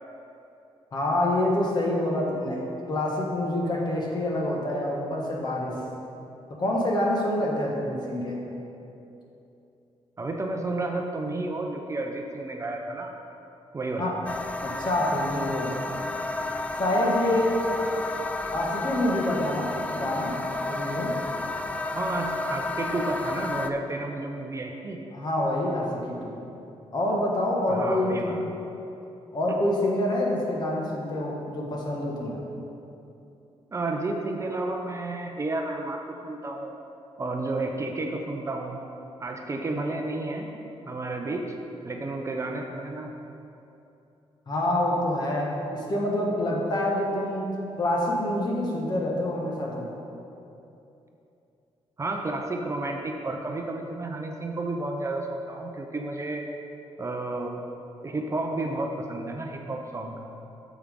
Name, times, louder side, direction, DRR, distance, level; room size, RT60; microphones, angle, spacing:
voice 1, 0.9-5.7 6.6-8.4 14.0-14.2 14.6-15.7 16.8-17.7 18.5-20.4 20.7-21.2 25.1-26.4 26.9-28.3 29.3-32.4 44.5-47.5 47.8-49.9, left 1 dB, 40° left, -2 dB, 1.5 m, -26 dB
voice 2, 10.2-13.1 13.7-14.1 21.9-25.0 27.7-28.4 33.7-36.7 37.2-38.8 39.2-40.5 40.9-41.6 41.8-43.1 52.0-56.4 57.0-57.6 58.0-60.2, right 2 dB, 30° right, 2 dB, 0.6 m, -31 dB
sound 1, 14.2-23.7, left 2 dB, 15° left, 0.3 m, -31 dB
8.6 x 7.2 x 3.7 m, 2.8 s
cardioid pair, 120°, 11 cm